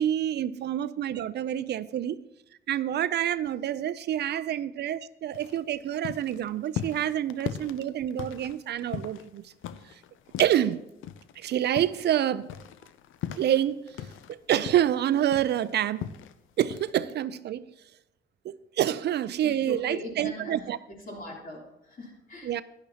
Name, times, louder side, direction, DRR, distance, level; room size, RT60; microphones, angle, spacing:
voice 1, 0.0-2.2 2.7-9.5 9.8-10.0 10.4-10.9 11.4-12.5 13.4-16.1 16.6-17.7 18.4-20.8 22.4-22.6, right 11 dB, 60° right, 16 dB, 0.4 m, -27 dB
sound 1, 5.3-10.8 11.0-14.3 14.6-16.3 16.7-16.9, left 9 dB, 80° left, 0.5 m, -38 dB
voice 2, 19.4-20.6 21.1-22.5, left 1 dB, 45° left, -2 dB, 3.2 m, -40 dB
11.5 x 10.5 x 2.8 m, 0.89 s
cardioid pair, 90°, 20 cm